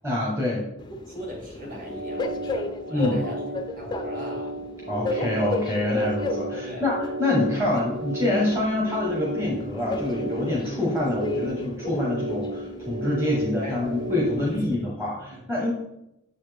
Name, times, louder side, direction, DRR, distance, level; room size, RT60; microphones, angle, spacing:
voice 1, 0.0-0.7 2.9-3.2 4.9-15.7, left 1 dB, 10° right, -4 dB, 1.0 m, -26 dB
Train, 0.8-14.7, left 2 dB, 20° left, 0.3 m, -35 dB
voice 2, 1.1-4.5 6.5-6.9 13.6-14.0 14.3-14.6 14.9-15.0 15.3-15.7, left 1 dB, 40° right, -1 dB, 1.9 m, -40 dB
sound 1, 1.6-14.4, right 1 dB, 85° right, 1.6 m, -34 dB
7.0 x 4.1 x 3.4 m, 0.84 s
head